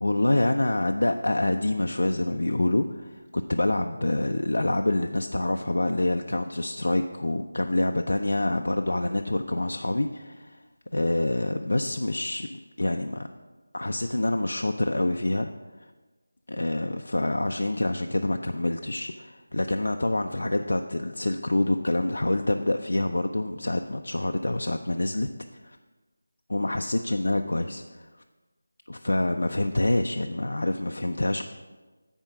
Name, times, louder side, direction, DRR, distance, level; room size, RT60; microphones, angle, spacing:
voice 1, 0.0-10.6 10.9-13.3 13.7-15.5 16.5-25.3 25.6-25.8 26.5-28.1 28.9-31.4, left 1 dB, 85° left, 5 dB, 0.4 m, -26 dB
8.9 x 4.5 x 6.0 m, 1.3 s
figure-of-eight pair, 180°, 0 cm